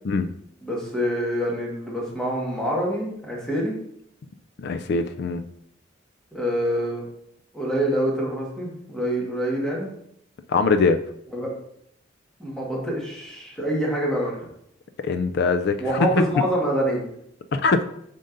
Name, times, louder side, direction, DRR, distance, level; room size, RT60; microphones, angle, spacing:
voice 1, 0.6-3.8 6.3-7.0 7.5-9.9 11.3-11.5 12.4-14.5 15.8-17.0, equal, 5° left, -4 dB, 1.5 m, -26 dB
voice 2, 4.6-5.4 10.5-11.0 15.0-16.3 17.5-17.8, left 4 dB, 60° left, 9 dB, 0.4 m, -22 dB
7.3 x 5.5 x 2.6 m, 0.72 s
head